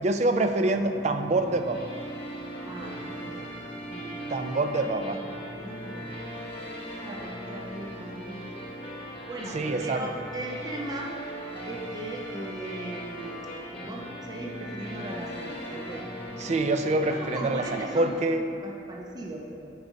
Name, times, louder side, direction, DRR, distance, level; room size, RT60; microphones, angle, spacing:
voice 1, 0.0-1.8 4.3-5.2 9.5-10.1 16.4-18.4, right 2 dB, 40° right, 7 dB, 0.4 m, -26 dB
sound 1, 0.6-18.1, equal, 30° left, 1.4 m, -39 dB
voice 2, 2.6-3.6 3.9-4.3 5.5-6.2 7.0-8.6 9.3-11.2 11.6-13.4 13.8-16.1 17.1-18.1 18.6-19.7, right 1 dB, 20° right, -2 dB, 0.8 m, -38 dB
9.3 x 4.8 x 5.2 m, 2.5 s
head